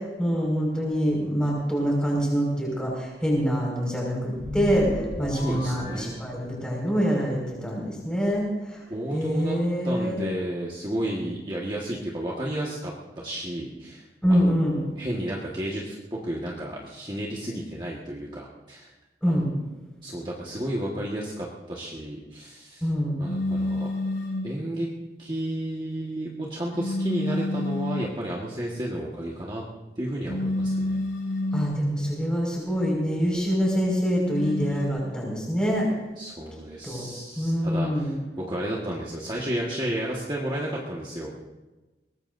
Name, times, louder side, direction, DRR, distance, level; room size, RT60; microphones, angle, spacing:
voice 1, 0.2-8.8 9.1-10.3 14.2-14.8 19.2-19.5 22.8-23.1 31.5-35.9 36.8-37.1 37.4-38.1, equal, 5° left, -3 dB, 5.3 m, -25 dB
sound 1, 4.3-6.9, left 1 dB, 40° left, 2.1 m, -34 dB
voice 2, 5.3-6.2 8.9-9.6 9.8-14.0 14.3-18.9 19.3-19.4 20.0-22.9 23.2-23.9 24.4-24.9 25.2-29.6 30.0-31.0 36.2-41.3, right 1 dB, 25° right, -4 dB, 1.5 m, -32 dB
sound 2, 23.2-24.6 26.7-28.1 30.2-31.8 34.2-34.9, left 1 dB, 80° left, 6.5 m, -28 dB
22.5 x 19.0 x 2.6 m, 1.1 s
head